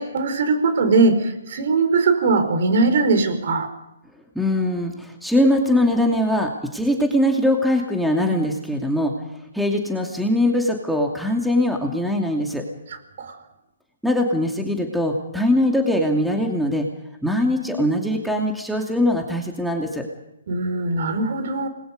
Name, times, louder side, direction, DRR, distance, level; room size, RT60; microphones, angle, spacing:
voice 1, 0.0-3.7 13.2-13.4 20.5-21.7, right 3 dB, 55° right, 8 dB, 4.8 m, -20 dB
voice 2, 4.3-9.1 9.5-12.6 14.0-16.9 17.2-20.0, left 1 dB, ahead, 2 dB, 2.5 m, -21 dB
29.0 x 21.0 x 5.3 m, 0.88 s
figure-of-eight pair, 130°, 0 cm